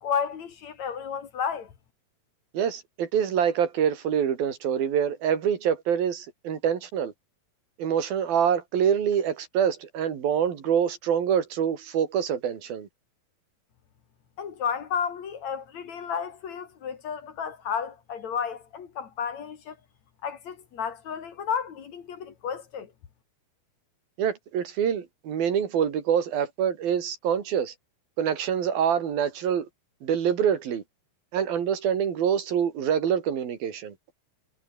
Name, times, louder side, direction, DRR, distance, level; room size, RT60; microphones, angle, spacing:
voice 1, 0.0-1.7 14.4-19.8 20.2-22.9, left 7 dB, 55° left, 3.1 m, -32 dB
voice 2, 2.5-7.1 7.8-12.9 24.2-27.7 28.2-29.7 30.0-30.8 31.3-33.9, right 8 dB, 85° right, 4.6 m, -25 dB
omnidirectional pair, 4.1 m